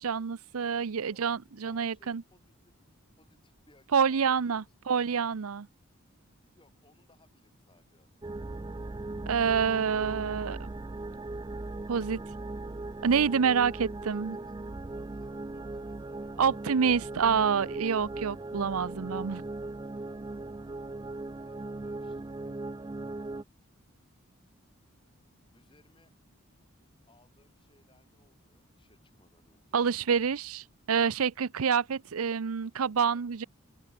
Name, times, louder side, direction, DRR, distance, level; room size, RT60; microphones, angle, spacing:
voice 1, 0.0-2.2 3.9-5.7 9.3-10.7 11.9-12.2 13.0-14.4 16.4-19.4 29.7-33.4, right 6 dB, 90° right, 0.6 m, -27 dB
voice 2, 1.6-2.7 3.2-4.9 6.5-8.3 11.9-12.4 14.1-16.7 21.4-22.7 25.5-26.1 27.1-29.9 33.0-33.2, left 2 dB, 25° left, 6.8 m, -65 dB
sound 1, 8.2-23.4, right 2 dB, 20° right, 0.4 m, -39 dB
head